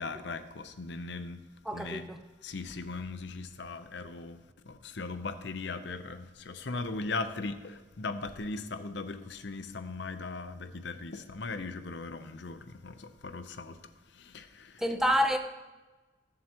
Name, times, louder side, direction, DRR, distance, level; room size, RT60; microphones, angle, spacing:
voice 1, 0.0-1.4 1.7-2.0 2.4-4.4 4.7-13.8 14.1-14.8, left 3 dB, 65° left, 0.6 m, -38 dB
voice 2, 1.6-2.2 14.8-15.4, equal, ahead, 0.5 m, -27 dB
15.0 x 7.6 x 2.9 m
head